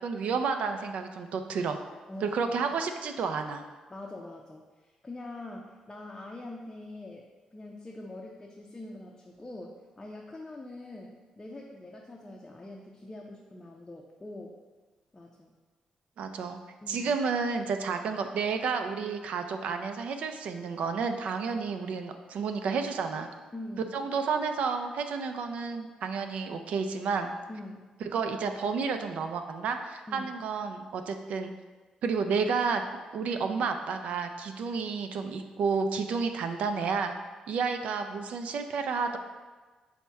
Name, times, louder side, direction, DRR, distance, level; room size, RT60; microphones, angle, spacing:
voice 1, 0.0-1.8 2.2-3.6 16.2-16.6 16.9-23.3 23.9-27.3 28.0-31.5 32.0-32.8 33.1-37.1 37.5-39.2, right 5 dB, 75° right, 6 dB, 0.4 m, -31 dB
voice 2, 2.1-2.6 3.9-14.6 15.1-15.5 16.8-17.1 23.5-23.9 27.5-27.9 30.1-30.3, left 2 dB, 20° left, -1 dB, 0.5 m, -44 dB
5.5 x 2.1 x 4.5 m, 1.3 s
cardioid pair, 95°, 2 cm